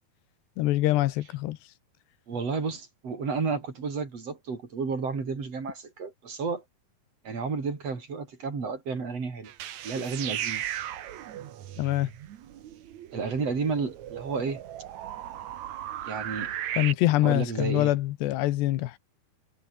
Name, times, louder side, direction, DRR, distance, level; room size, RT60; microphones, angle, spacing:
voice 1, 0.6-1.6 11.8-12.1 16.8-19.0, left 16 dB, 80° left, 3.2 m, -24 dB
voice 2, 2.3-6.6 7.2-9.5 9.8-10.6 13.1-14.6 16.0-16.5 17.2-17.9, right 4 dB, 35° right, 5.1 m, -31 dB
sound 1, 9.4-16.9, right 11 dB, 65° right, 1.9 m, -37 dB
omnidirectional pair, 4.9 m